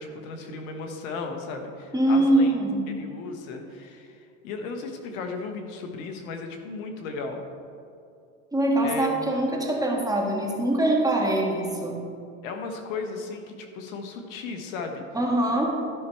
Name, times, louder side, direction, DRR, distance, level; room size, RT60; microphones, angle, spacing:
voice 1, 0.0-2.5 2.9-7.4 8.8-9.3 12.4-15.0, left 4 dB, 70° left, 5 dB, 1.4 m, -35 dB
voice 2, 1.9-2.8 8.5-12.0 15.1-15.7, right 1 dB, 10° right, -1 dB, 1.6 m, -23 dB
12.5 x 5.9 x 4.5 m, 2.5 s
supercardioid pair, 105°, 41 cm